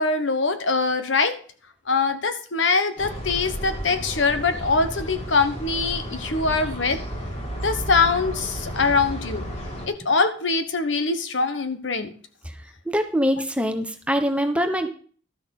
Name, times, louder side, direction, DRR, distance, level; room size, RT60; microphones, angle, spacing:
voice 1, 0.0-1.4 1.9-7.0 7.6-9.4 9.9-12.1, left 4 dB, 70° left, 9 dB, 1.3 m, -23 dB
sound 1, 3.0-9.9, equal, 35° left, 2.5 m, -33 dB
voice 2, 12.9-14.9, equal, 5° right, 7 dB, 1.1 m, -23 dB
12.5 x 6.3 x 6.5 m, 0.43 s
head